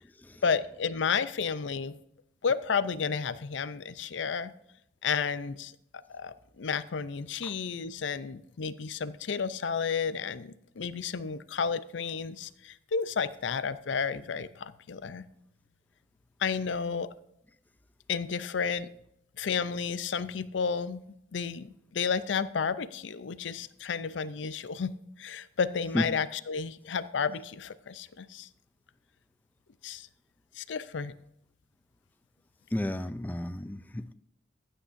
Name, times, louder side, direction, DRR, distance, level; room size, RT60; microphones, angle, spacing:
voice 1, 0.4-1.9 2.4-4.5 5.0-5.7 6.1-15.2 16.4-17.1 18.1-18.9 19.4-21.0 21.3-24.9 25.2-28.5 29.8-30.1 30.6-31.1, left 6 dB, 85° left, 0.5 m, -32 dB
voice 2, 32.7-34.1, left 1 dB, 10° left, 0.3 m, -32 dB
15.0 x 8.8 x 2.6 m
head